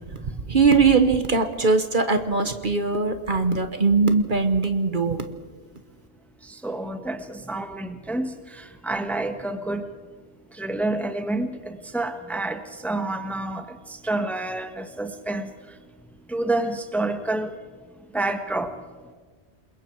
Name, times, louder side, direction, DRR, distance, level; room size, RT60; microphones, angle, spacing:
voice 1, 0.5-5.2, right 4 dB, 50° right, 8 dB, 1.4 m, -20 dB
voice 2, 6.4-9.9 10.5-15.5 16.3-17.5 18.1-18.7, right 2 dB, ahead, 7 dB, 1.2 m, -28 dB
28.5 x 21.5 x 4.7 m, 1.5 s
omnidirectional pair, 1.1 m